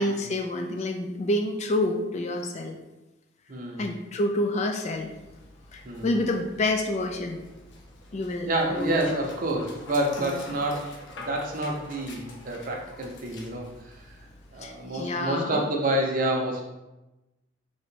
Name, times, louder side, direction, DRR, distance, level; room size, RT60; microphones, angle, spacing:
voice 1, 0.0-2.8 3.8-5.1 5.7-7.4 8.1-9.2 10.2-10.3 14.6-15.6, left 1 dB, 35° left, 4 dB, 0.3 m, -28 dB
voice 2, 3.5-3.9 5.8-6.1 8.4-14.0 14.5-16.6, right 1 dB, 45° right, 0 dB, 0.7 m, -28 dB
Dog, 4.9-14.8, left 2 dB, 65° left, 0.7 m, -46 dB
3.0 x 2.8 x 4.4 m, 1.0 s
head